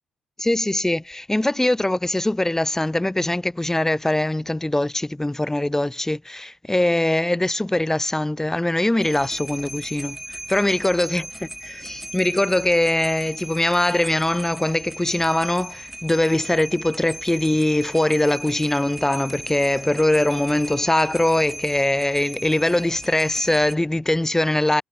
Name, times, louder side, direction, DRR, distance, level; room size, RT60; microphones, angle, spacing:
voice 1, 0.4-11.3 11.6-24.8, left 1 dB, 10° left, 2.3 m, -22 dB
sound 1, 9.0-23.8, right 1 dB, 5° right, 2.0 m, -37 dB
hypercardioid pair, 40°, 3 cm